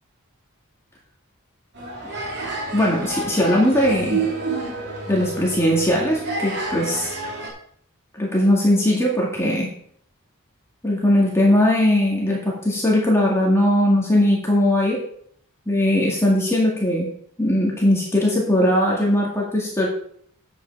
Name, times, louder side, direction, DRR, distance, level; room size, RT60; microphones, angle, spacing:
sound 1, 1.7-7.5, right 3 dB, 55° right, 2.8 m, -29 dB
voice 1, 2.7-4.2 5.1-7.2 8.1-9.7 10.8-15.0 15.7-17.1 17.4-19.9, left 1 dB, 10° left, -3 dB, 2.0 m, -19 dB
9.5 x 8.1 x 4.6 m, 0.65 s
head